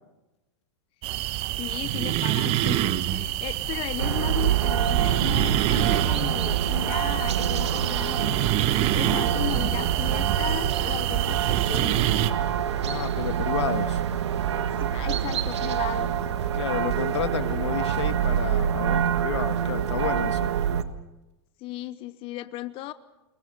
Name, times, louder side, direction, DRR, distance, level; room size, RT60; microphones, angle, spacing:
sound 1, 1.0-12.3, right 13 dB, 45° right, 1.3 m, -26 dB
voice 1, 1.6-8.3 8.9-12.2 14.8-16.3 21.6-22.9, left 15 dB, 40° left, 13 dB, 0.9 m, -36 dB
sound 2, 2.6-19.1, left 2 dB, 5° left, 7.6 m, -45 dB
sound 3, 4.0-20.8, right 9 dB, 85° right, 1.5 m, -26 dB
voice 2, 12.8-14.0 16.5-20.5, left 9 dB, 85° left, 9 dB, 1.7 m, -31 dB
29.0 x 21.5 x 5.4 m, 1.0 s
hypercardioid pair, 125°, 14 cm